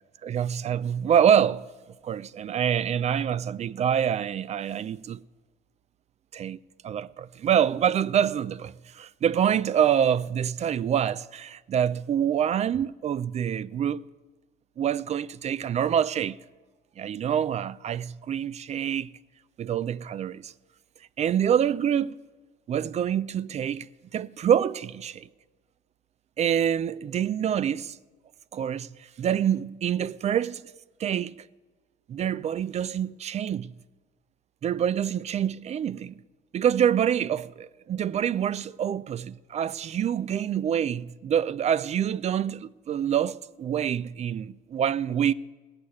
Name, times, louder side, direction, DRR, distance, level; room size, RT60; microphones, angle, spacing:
voice 1, 0.0-1.7 2.0-5.2 6.3-6.6 6.8-14.0 14.8-16.4 17.0-19.1 19.6-20.5 21.2-22.2 22.7-25.3 26.4-28.0 28.5-30.7 31.0-31.4 32.1-33.7 34.6-36.2 36.5-45.3, right 9 dB, 40° right, 0.5 m, -26 dB
18.0 x 6.7 x 9.7 m
cardioid pair, 110°, 17 cm